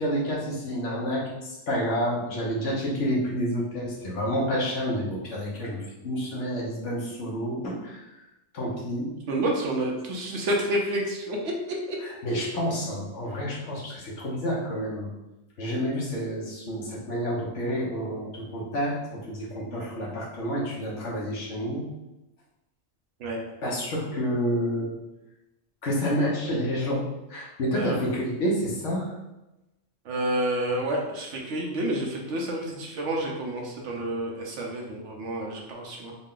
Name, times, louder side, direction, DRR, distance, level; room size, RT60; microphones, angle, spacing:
voice 1, 0.0-8.0 8.5-9.1 12.2-15.1 15.6-21.8 23.6-24.9 25.8-29.2, equal, 65° left, -4 dB, 1.2 m, -29 dB
voice 2, 9.3-11.5 11.9-12.0 23.2-23.4 27.7-28.2 30.0-36.1, right 1 dB, 65° right, 0 dB, 1.0 m, -29 dB
4.0 x 2.1 x 3.7 m, 0.98 s
omnidirectional pair, 1.3 m